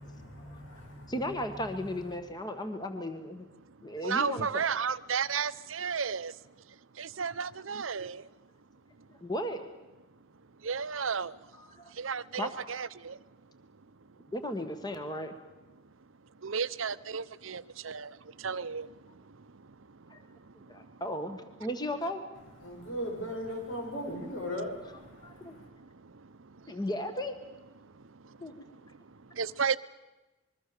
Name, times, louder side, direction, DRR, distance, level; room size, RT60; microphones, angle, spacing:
voice 1, 0.0-1.1 22.6-25.6, equal, 75° left, 2 dB, 6.9 m, -38 dB
voice 2, 1.1-3.5 3.8-4.6 9.2-9.7 11.5-11.9 12.3-12.5 14.3-15.3 20.1-20.2 20.7-22.2 25.2-25.6 26.7-27.3 28.4-28.5, left 1 dB, 20° left, 7 dB, 1.6 m, -35 dB
voice 3, 4.0-6.3 7.0-8.2 10.6-11.3 12.0-13.1 16.4-18.1 18.4-18.9 29.4-29.8, right 6 dB, 85° right, 14 dB, 0.8 m, -32 dB
26.5 x 22.0 x 6.9 m, 1.1 s
head